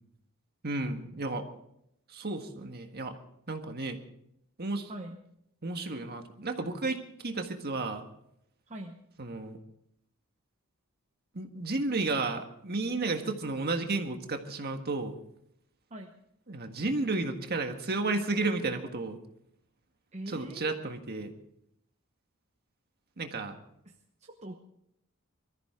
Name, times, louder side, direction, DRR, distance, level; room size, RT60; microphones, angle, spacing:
voice 1, 0.6-1.4 2.1-3.1 3.5-4.0 4.6-4.9 5.6-8.0 9.2-9.6 11.3-15.1 16.5-19.2 20.3-21.3 23.2-23.6, right 3 dB, 50° right, 5 dB, 1.7 m, -32 dB
voice 2, 8.7-9.0 15.9-16.1 20.1-20.8 23.8-23.9 24.2-24.6, right 1 dB, 30° right, 2 dB, 1.1 m, -42 dB
23.0 x 14.0 x 3.8 m, 0.75 s
head